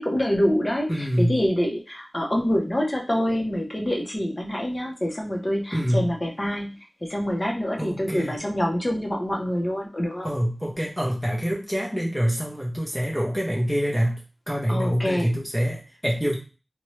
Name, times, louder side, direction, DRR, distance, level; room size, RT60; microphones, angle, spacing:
voice 1, 0.0-10.3 14.7-15.3, equal, 35° left, 0 dB, 0.8 m, -26 dB
voice 2, 0.9-1.4 5.7-6.1 7.8-8.4 10.2-14.2 14.5-16.4, equal, ahead, -3 dB, 0.8 m, -25 dB
2.6 x 2.2 x 3.1 m, 0.32 s
wide cardioid pair, 55°, 0 cm